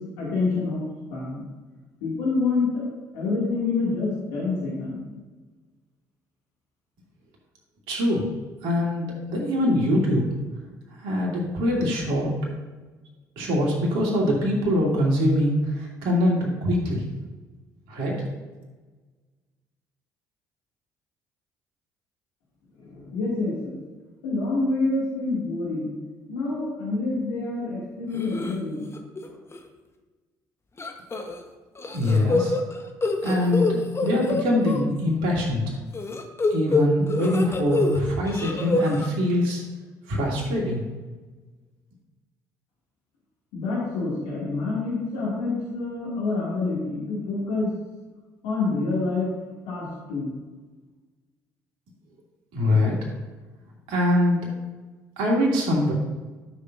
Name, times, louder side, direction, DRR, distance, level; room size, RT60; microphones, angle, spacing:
voice 1, 0.2-0.8 1.1-1.4 2.0-2.9 3.1-5.1 22.8-23.7 24.2-25.9 26.3-28.9 29.2-29.3 43.5-47.7 48.4-49.3 49.7-50.3, left 3 dB, 75° left, -7 dB, 2.6 m, -27 dB
voice 2, 7.9-8.2 8.6-10.3 11.0-12.3 13.4-17.0 17.9-18.2 31.9-32.5 33.2-35.8 36.5-39.6 40.1-40.8 52.5-53.0 53.9-54.5 55.2-55.9, left 1 dB, 70° right, -3 dB, 2.7 m, -23 dB
sound 1, 28.1-28.5 28.9-29.3 29.5-29.6 30.8-31.4 31.8-34.8 35.9-38.0 38.3-39.1, left 3 dB, 30° left, 1.3 m, -26 dB
12.0 x 6.6 x 2.7 m, 1.3 s
hypercardioid pair, 55°, 9 cm